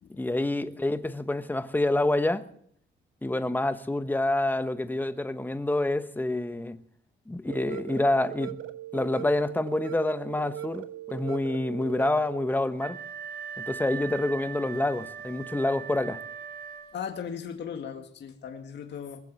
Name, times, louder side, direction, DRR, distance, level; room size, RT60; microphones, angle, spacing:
voice 1, 0.2-2.4 3.2-6.8 7.3-8.6 8.9-13.0 13.6-16.2, left 2 dB, 10° left, 1.1 m, -27 dB
sound 1, 7.5-12.5, right 12 dB, 80° right, 1.1 m, -39 dB
Wind instrument woodwind instrument, 12.8-17.2, right 7 dB, 50° right, 3.4 m, -40 dB
voice 2, 16.9-19.2, left 7 dB, 60° left, 2.0 m, -37 dB
21.5 x 7.6 x 7.6 m
cardioid pair, 90°, 20 cm